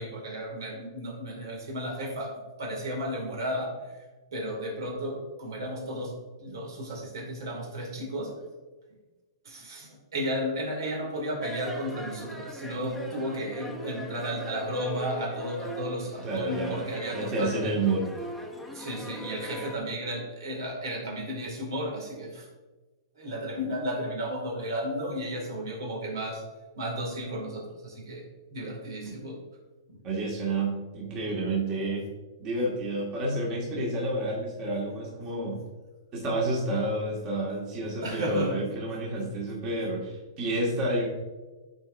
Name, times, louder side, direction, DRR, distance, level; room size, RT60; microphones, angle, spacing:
voice 1, 0.0-4.0 4.3-8.3 9.4-17.8 18.7-22.5 23.2-26.4 26.8-28.2 28.5-29.4 29.9-30.0 38.0-38.6, equal, 75° right, 0 dB, 2.2 m, -33 dB
sound 1, 11.4-19.8, equal, ahead, 0.8 m, -40 dB
voice 2, 16.2-16.8 17.1-18.0 30.0-32.1 32.4-35.6 36.1-41.1, right 2 dB, 35° right, -4 dB, 1.9 m, -29 dB
10.0 x 4.6 x 2.6 m, 1.2 s
hypercardioid pair, 135°, 2 cm